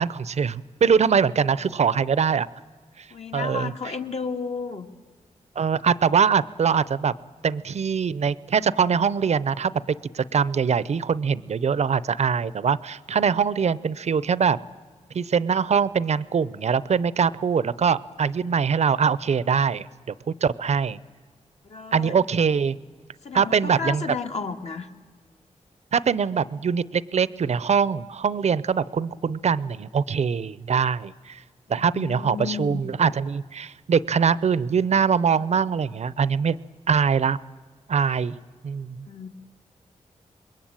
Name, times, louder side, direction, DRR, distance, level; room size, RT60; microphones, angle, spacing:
voice 1, 0.0-2.5 3.3-3.7 5.6-7.1 7.4-9.7 10.1-14.6 15.1-19.8 20.4-21.0 21.9-22.8 23.3-24.0 25.9-31.4 31.7-36.6 36.9-37.4 37.9-38.4 38.6-39.1, right 6 dB, 60° right, 18 dB, 0.7 m, -23 dB
voice 2, 3.1-4.9 21.6-22.2 23.2-24.9 31.7-32.8 39.1-39.3, left 5 dB, 60° left, 4 dB, 1.8 m, -32 dB
26.0 x 21.5 x 8.9 m, 1.5 s
wide cardioid pair, 110°, 13 cm